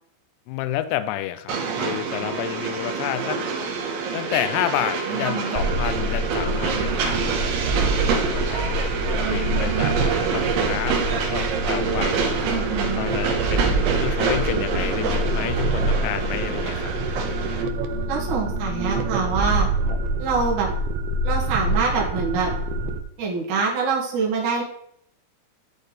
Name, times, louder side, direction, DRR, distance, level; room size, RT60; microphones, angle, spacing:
voice 1, 0.5-3.4 4.1-7.7 7.9-8.8 9.3-12.3 13.0-16.9 19.9-20.0, left 13 dB, 80° left, 11 dB, 2.6 m, -30 dB
Train, 1.5-17.6, right 5 dB, 70° right, 3.0 m, -27 dB
voice 2, 5.1-5.6 9.2-10.0 12.5-13.0 18.1-19.7 20.2-20.7 21.2-22.5 23.2-24.6, right 5 dB, 55° right, -3 dB, 2.8 m, -25 dB
sound 1, 5.6-23.0, right 2 dB, 90° right, 3.0 m, -26 dB
11.5 x 4.4 x 3.3 m, 0.72 s
omnidirectional pair, 5.0 m